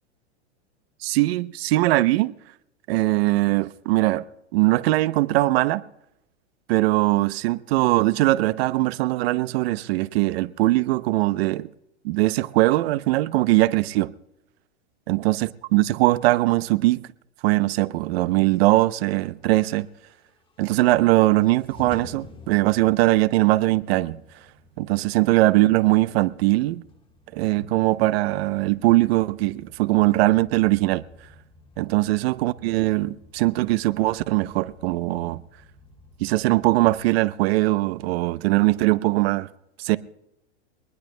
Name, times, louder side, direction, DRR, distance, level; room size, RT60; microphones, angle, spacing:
voice 1, 1.0-2.3 2.9-4.3 4.5-5.8 6.7-11.7 12.0-14.1 15.1-17.1 17.4-19.9 20.6-24.2 24.8-26.8 27.3-31.0 31.8-35.4 36.2-39.5 39.8-40.0, right 18 dB, 60° right, 0.7 m, -21 dB
sound 1, 19.2-37.1, left 3 dB, 15° left, 1.5 m, -51 dB
23.0 x 20.0 x 2.2 m
hypercardioid pair, 130°, 35 cm